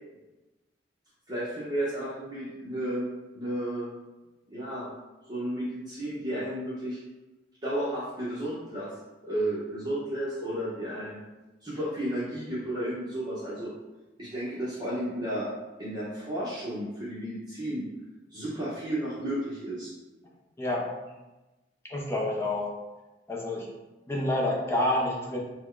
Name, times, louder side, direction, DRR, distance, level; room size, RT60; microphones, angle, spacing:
voice 1, 1.3-3.1 3.3-3.9 4.5-4.9 5.3-7.0 7.6-8.9 9.2-11.2 11.6-13.7 14.2-15.5 15.8-17.8 18.3-19.9, right 1 dB, 25° right, -10 dB, 0.9 m, -32 dB
voice 2, 21.9-22.7 23.3-23.7 24.1-25.4, left 1 dB, 15° left, -3 dB, 0.6 m, -28 dB
4.3 x 2.2 x 4.5 m, 1.1 s
head